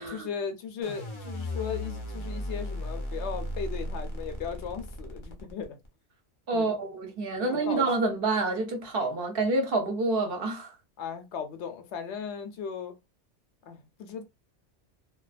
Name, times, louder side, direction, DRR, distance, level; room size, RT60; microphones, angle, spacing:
voice 1, 0.1-5.8 6.5-6.7 7.3-7.9 11.0-12.9 13.7-14.2, left 6 dB, 75° left, 0.8 m, -37 dB
sound 1, 0.8-5.9, left 1 dB, 35° left, 0.4 m, -35 dB
voice 2, 6.5-10.8, right 3 dB, 60° right, 0.8 m, -28 dB
2.3 x 2.2 x 2.4 m
omnidirectional pair, 1.2 m